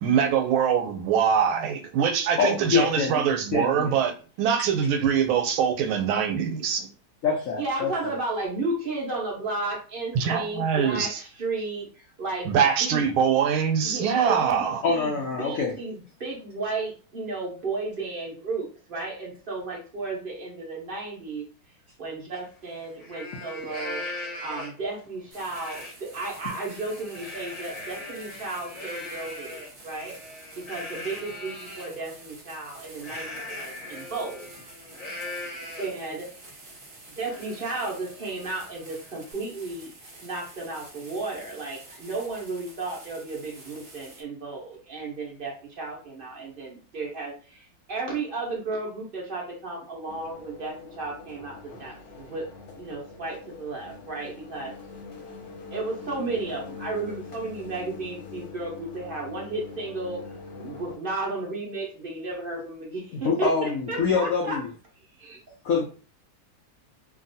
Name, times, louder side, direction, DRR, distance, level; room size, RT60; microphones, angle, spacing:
voice 1, 0.0-6.9 10.1-11.2 12.4-14.8, right 7 dB, 90° right, 1.4 m, -23 dB
voice 2, 2.4-3.2 3.5-4.0 7.2-8.1 14.8-15.7 63.1-64.7 65.6-65.8, left 5 dB, 75° left, 0.7 m, -25 dB
voice 3, 7.6-11.9 12.2-12.5 12.8-13.0 13.8-15.1 15.4-21.4 22.0-24.0 24.4-30.2 30.7-34.5 35.8-36.3 37.2-39.9 40.2-52.5 52.8-54.7 55.7-60.2 60.6-64.6 65.2-65.4, right 3 dB, 55° right, 0.6 m, -33 dB
Livestock farm animals working animals, 22.3-22.4 22.8-24.9 25.5-25.9 26.3-31.9 33.0-36.1 36.5-36.6 37.0-39.3, left 2 dB, 25° left, 0.8 m, -40 dB
sound 1, 25.3-44.2, right 2 dB, 35° right, 1.2 m, -49 dB
sound 2, 50.1-61.0, left 4 dB, 60° left, 1.1 m, -43 dB
2.9 x 2.6 x 2.6 m
omnidirectional pair, 2.2 m